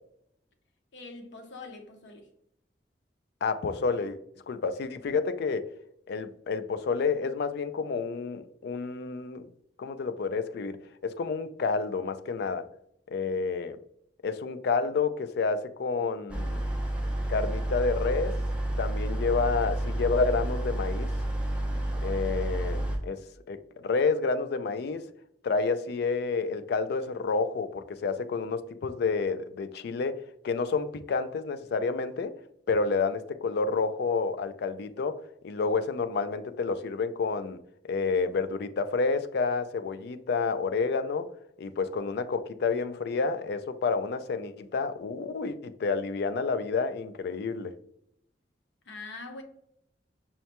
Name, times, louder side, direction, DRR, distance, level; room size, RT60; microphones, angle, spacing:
voice 1, 0.9-2.3 48.8-49.4, left 3 dB, 80° left, 0.7 m, -43 dB
voice 2, 3.4-4.2 4.5-5.7 6.1-9.5 9.8-12.7 13.1-13.8 14.2-16.6 17.3-18.4 18.8-21.1 22.0-23.2 23.5-25.1 25.4-30.2 30.4-32.3 32.7-37.6 37.8-41.3 41.6-47.7, left 4 dB, 60° left, 0.3 m, -29 dB
sound 1, 16.3-23.0, right 1 dB, 5° right, 0.6 m, -30 dB
5.5 x 2.1 x 2.8 m
head